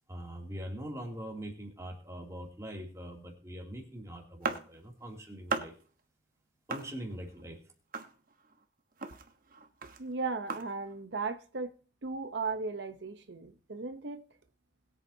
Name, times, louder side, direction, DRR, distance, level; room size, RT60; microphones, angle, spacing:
voice 1, 0.1-5.7 6.7-7.6, right 1 dB, 20° right, 2.8 m, -42 dB
sound 1, 4.4-5.1 5.5-6.0 6.7-7.4 7.9-8.6 8.9-11.0, right 4 dB, 50° right, 1.2 m, -38 dB
voice 2, 10.0-11.7 12.0-14.2, right 4 dB, 80° right, 0.9 m, -36 dB
21.5 x 8.2 x 2.8 m
head